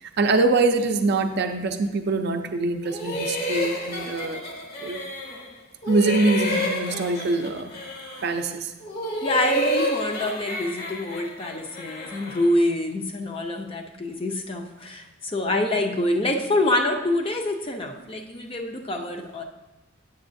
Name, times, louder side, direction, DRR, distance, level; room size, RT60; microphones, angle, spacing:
voice 1, 0.0-4.5 4.8-5.0 5.9-7.7 8.2-8.7, right 3 dB, 55° right, 6 dB, 0.5 m, -24 dB
sound 1, 2.8-5.5 5.8-8.4 8.8-12.6, left 1 dB, 50° left, 0.9 m, -30 dB
voice 2, 9.2-19.4, left 1 dB, 25° left, 2 dB, 0.5 m, -26 dB
8.4 x 7.0 x 2.6 m, 1.0 s
head